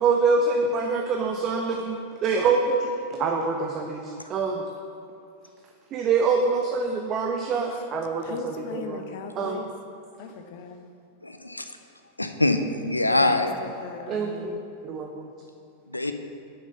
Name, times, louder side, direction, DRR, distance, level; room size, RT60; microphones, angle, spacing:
voice 1, 0.0-4.6 5.9-9.0 9.4-9.6 14.1-15.3, right 4 dB, 30° right, 3 dB, 0.6 m, -25 dB
voice 2, 8.2-9.7 10.2-10.8 13.1-14.6, left 6 dB, 50° left, 6 dB, 0.8 m, -39 dB
voice 3, 11.2-11.6 12.2-13.5 15.9-16.1, left 2 dB, 85° left, 7 dB, 0.6 m, -23 dB
8.8 x 6.3 x 5.4 m, 2.5 s
figure-of-eight pair, 90°, 0 cm